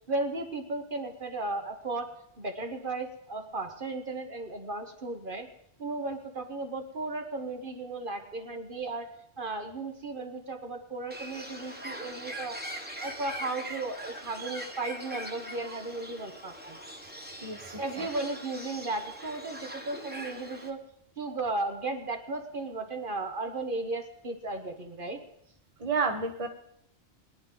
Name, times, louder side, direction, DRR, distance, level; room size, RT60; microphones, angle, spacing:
voice 1, 0.1-2.1 2.4-5.5 5.8-9.1 9.4-12.6 13.0-16.8 17.8-20.8 21.2-25.2, right 2 dB, 50° right, 4 dB, 1.3 m, -35 dB
Bird, 11.1-20.7, right 1 dB, 10° right, 1.3 m, -42 dB
voice 2, 17.4-18.1 25.8-26.5, right 4 dB, 30° right, 5 dB, 1.1 m, -31 dB
21.5 x 10.5 x 3.8 m, 0.74 s
omnidirectional pair, 1.2 m